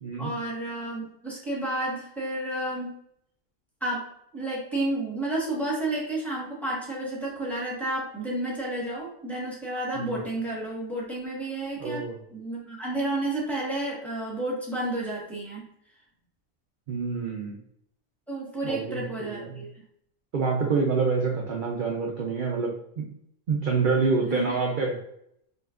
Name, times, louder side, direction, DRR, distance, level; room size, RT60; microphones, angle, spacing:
voice 1, 0.2-3.0 3.8-4.0 4.3-12.0 12.3-15.7 18.3-19.7 24.2-24.6, right 1 dB, ahead, -5 dB, 1.2 m, -31 dB
voice 2, 11.8-12.2 16.9-17.6 18.6-19.6 20.3-23.1 23.5-25.0, right 4 dB, 50° right, -1 dB, 0.6 m, -27 dB
5.2 x 2.5 x 2.4 m, 0.72 s
omnidirectional pair, 1.4 m